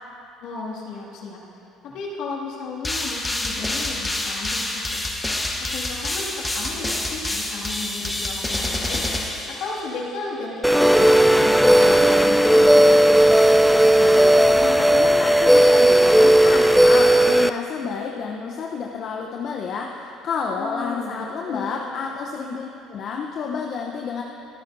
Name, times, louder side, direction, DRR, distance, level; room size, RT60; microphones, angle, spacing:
voice 1, 0.4-1.4 1.8-5.1 5.6-9.0 9.5-12.7 20.6-21.1 21.5-22.0, left 3 dB, 70° left, -4 dB, 2.3 m, -34 dB
sound 1, 2.8-10.1, left 2 dB, 15° left, 1.2 m, -27 dB
sound 2, 10.6-17.5, right 1 dB, ahead, 0.4 m, -15 dB
voice 2, 14.0-24.2, left 5 dB, 55° left, 0 dB, 0.8 m, -30 dB
26.0 x 8.9 x 2.7 m, 2.9 s
supercardioid pair, 85°, 0 cm